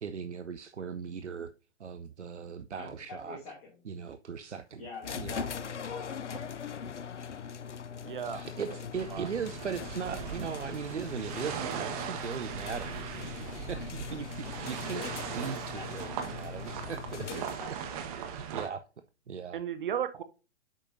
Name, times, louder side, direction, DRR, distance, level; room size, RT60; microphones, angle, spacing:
voice 1, 0.0-1.5 1.8-3.4 3.9-4.8 5.1-5.5 6.9-7.0 8.2-17.3 18.2-18.9 19.3-19.6, right 6 dB, 85° right, 0.6 m, -39 dB
voice 2, 2.8-3.8 4.8-6.7 14.9-16.2 17.2-18.1, left 4 dB, 35° left, 2.5 m, -46 dB
sound 1, 5.0-17.8, left 7 dB, 85° left, 0.6 m, -41 dB
voice 3, 8.0-8.4 9.1-9.3 19.5-20.2, right 9 dB, 50° right, 0.6 m, -34 dB
sound 2, 8.9-18.7, right 8 dB, 35° right, 1.2 m, -39 dB
9.0 x 6.3 x 2.6 m
figure-of-eight pair, 120°, 34 cm